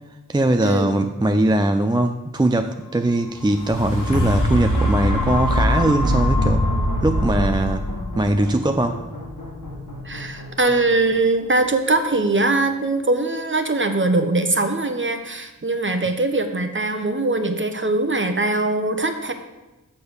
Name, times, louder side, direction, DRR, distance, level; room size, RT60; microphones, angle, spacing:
voice 1, 0.3-6.7 7.0-7.8 8.2-9.0, right 1 dB, 15° right, 6 dB, 0.4 m, -20 dB
sound 1, 3.3-11.4 11.9-12.0, equal, 75° left, 1.5 m, -23 dB
voice 2, 10.0-19.3, right 2 dB, 35° right, 7 dB, 0.9 m, -21 dB
7.0 x 5.0 x 6.4 m, 1.1 s
wide cardioid pair, 45°, 33 cm